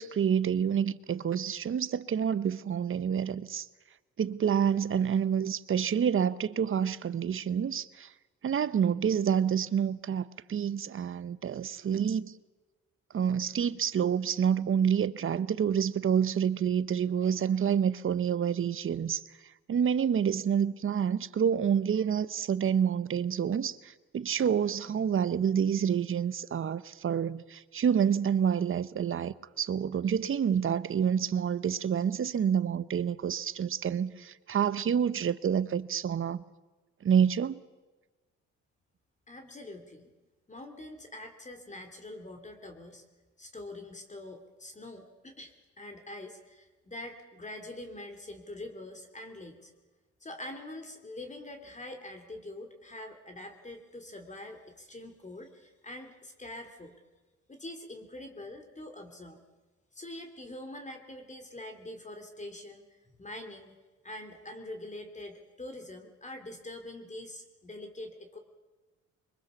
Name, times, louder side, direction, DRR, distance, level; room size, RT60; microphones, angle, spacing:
voice 1, 0.0-3.7 4.2-8.1 8.4-12.3 13.1-19.2 19.7-36.4 37.0-37.6, right 8 dB, 45° right, 0.9 m, -28 dB
voice 2, 39.3-40.1 40.5-43.0 43.4-49.7 50.2-57.0 57.5-59.4 59.9-62.8 63.2-63.7 64.0-68.4, left 1 dB, 25° left, 2.7 m, -44 dB
23.5 x 21.5 x 7.0 m
cardioid pair, 90°, 30 cm